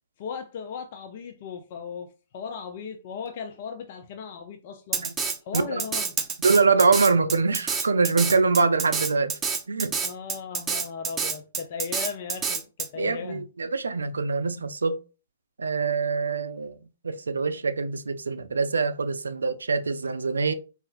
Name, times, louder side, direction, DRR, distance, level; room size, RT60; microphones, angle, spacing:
voice 1, 0.2-5.0 5.4-6.1 10.0-13.5, left 6 dB, 50° left, 0.4 m, -37 dB
Drum kit, 4.9-12.9, right 5 dB, 15° right, 0.5 m, -28 dB
voice 2, 5.5-5.8 6.4-9.4 9.7-10.0 13.0-15.0 15.6-16.8 17.0-20.5, right 4 dB, 75° right, 0.4 m, -24 dB
4.1 x 2.4 x 2.4 m
figure-of-eight pair, 115°, 0 cm